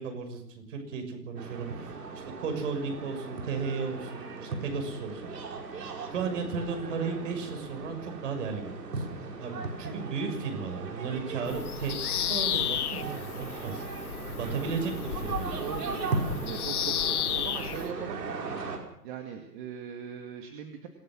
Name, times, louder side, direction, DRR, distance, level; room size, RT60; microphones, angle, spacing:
voice 1, 0.0-5.2 6.1-9.0 9.4-13.8 14.3-15.6, right 5 dB, 50° right, 5 dB, 6.6 m, -35 dB
sound 1, 1.4-18.8, right 4 dB, 80° right, 5.7 m, -38 dB
voice 2, 1.7-2.1 9.6-9.9 15.5-18.3 19.0-20.9, right 7 dB, 30° right, 4 dB, 2.3 m, -41 dB
Bird vocalization bird call bird song, 11.5-17.9, left 10 dB, 65° left, 1.4 m, -33 dB
26.5 x 17.0 x 6.3 m, 0.73 s
hypercardioid pair, 155°, 48 cm